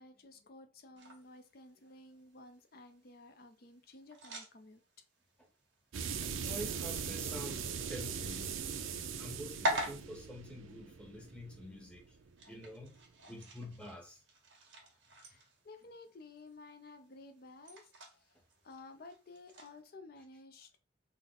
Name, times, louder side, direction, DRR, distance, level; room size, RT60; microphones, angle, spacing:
voice 1, 0.0-4.8 15.2-18.3 18.6-20.8, left 2 dB, 50° left, 0.5 m, -54 dB
sound 1, 1.0-19.8, equal, 70° right, 1.2 m, -46 dB
sound 2, 5.9-12.4, right 6 dB, 90° right, 0.4 m, -40 dB
voice 2, 6.4-8.6 9.2-12.2 12.5-13.0 13.3-14.2, equal, 5° left, 0.6 m, -47 dB
3.7 x 2.0 x 3.7 m
head